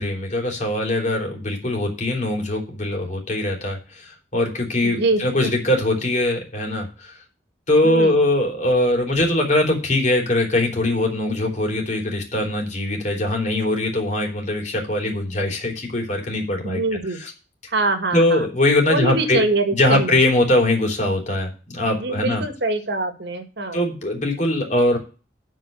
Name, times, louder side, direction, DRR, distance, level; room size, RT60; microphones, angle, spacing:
voice 1, 0.0-7.2 7.7-16.8 17.2-17.3 18.1-19.4 19.7-22.4 23.7-25.0, left 1 dB, 40° left, 1 dB, 3.5 m, -21 dB
voice 2, 4.8-5.5 7.8-8.2 16.6-17.2 17.7-18.5 18.9-20.2 21.9-23.8, right 2 dB, 65° right, 7 dB, 2.0 m, -24 dB
8.8 x 5.6 x 7.5 m, 0.34 s
head